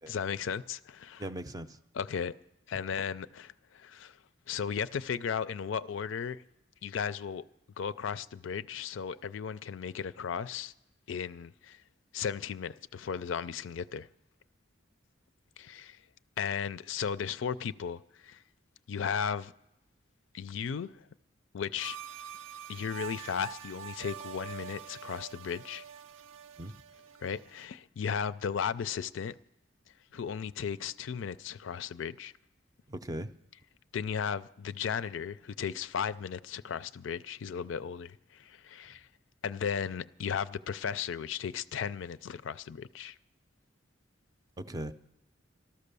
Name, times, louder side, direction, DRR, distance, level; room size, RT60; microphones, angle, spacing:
voice 1, 0.1-1.2 1.9-2.3 2.7-4.2 4.5-6.4 6.8-7.4 7.8-10.7 11.1-11.8 12.1-14.1 15.6-16.0 16.4-18.4 18.9-19.5 20.3-21.0 21.5-22.0 22.7-25.8 27.2-29.3 30.1-32.3 33.9-39.1 39.4-43.2, left 7 dB, 80° left, 0.4 m, -35 dB
voice 2, 1.2-1.8 26.6-26.8 32.9-33.3 44.6-44.9, right 1 dB, 20° right, 0.5 m, -39 dB
sound 1, 21.8-27.7, right 8 dB, 90° right, 0.5 m, -45 dB
13.5 x 12.5 x 6.8 m
head